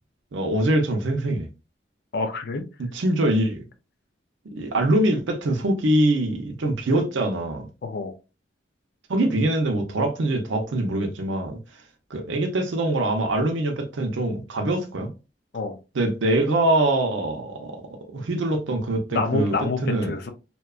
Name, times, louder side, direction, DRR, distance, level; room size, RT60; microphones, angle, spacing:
voice 1, 0.3-1.5 2.9-3.6 4.5-7.7 9.1-11.6 12.1-15.1 15.9-20.1, right 1 dB, 90° right, 0.6 m, -23 dB
voice 2, 2.1-2.7 7.8-8.1 15.5-15.8 19.1-20.3, left 3 dB, 55° left, 0.4 m, -27 dB
2.7 x 2.2 x 2.3 m
head